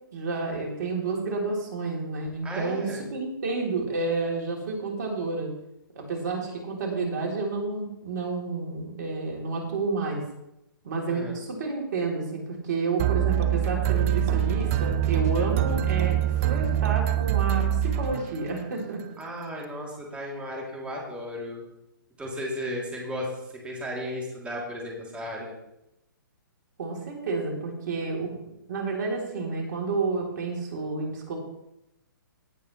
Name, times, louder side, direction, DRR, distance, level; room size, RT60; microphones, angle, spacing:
voice 1, 0.1-5.5 5.9-10.2 10.8-19.0 26.8-28.4 28.7-31.4, right 3 dB, 55° right, -1 dB, 3.1 m, -30 dB
voice 2, 2.4-3.0 11.1-11.4 19.2-21.6 22.2-25.5, equal, 10° right, -3 dB, 2.8 m, -35 dB
sound 1, 13.0-18.7, right 11 dB, 40° right, 0.8 m, -24 dB
17.0 x 7.0 x 3.1 m, 0.86 s
hypercardioid pair, 135°, 12 cm